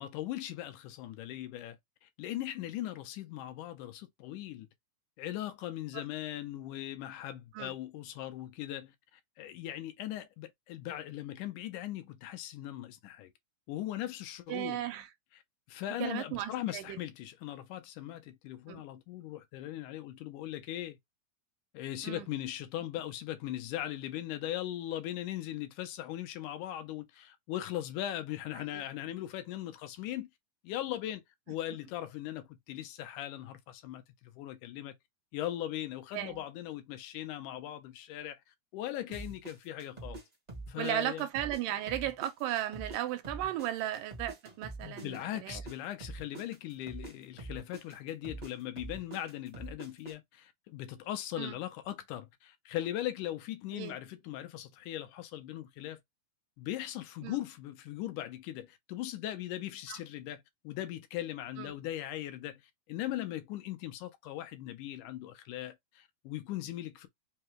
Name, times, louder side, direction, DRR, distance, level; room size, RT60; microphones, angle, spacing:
voice 1, 0.0-1.8 2.0-4.7 5.2-13.3 13.7-14.8 15.7-21.0 21.7-30.3 30.6-31.2 31.5-34.9 35.3-38.4 38.7-40.2 40.7-41.3 44.8-56.0 56.6-67.1, left 13 dB, 80° left, 2.1 m, -39 dB
voice 2, 14.5-15.1 16.0-17.0 18.7-18.8 22.0-22.3 28.7-28.8 36.1-36.4 39.1-39.2 40.8-45.6 51.4-51.6 53.7-54.0 57.2-57.4 59.9-60.0 61.6-61.7, right 13 dB, 85° right, 2.4 m, -36 dB
sound 1, 39.1-41.6 41.9-45.7 46.0-50.1, right 2 dB, 35° right, 0.6 m, -44 dB
5.5 x 2.3 x 2.9 m
omnidirectional pair, 3.8 m